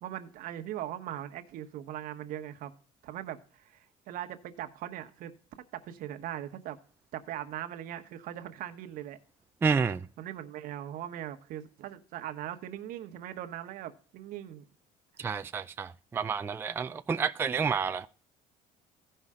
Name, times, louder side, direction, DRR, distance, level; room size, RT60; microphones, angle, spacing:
voice 1, 0.0-2.7 3.0-6.8 7.1-9.2 10.2-14.6, right 12 dB, 70° right, 1.2 m, -40 dB
voice 2, 9.6-10.1 15.2-18.1, right 5 dB, 15° right, 0.4 m, -30 dB
15.5 x 5.6 x 3.6 m
cardioid pair, 125°, 15 cm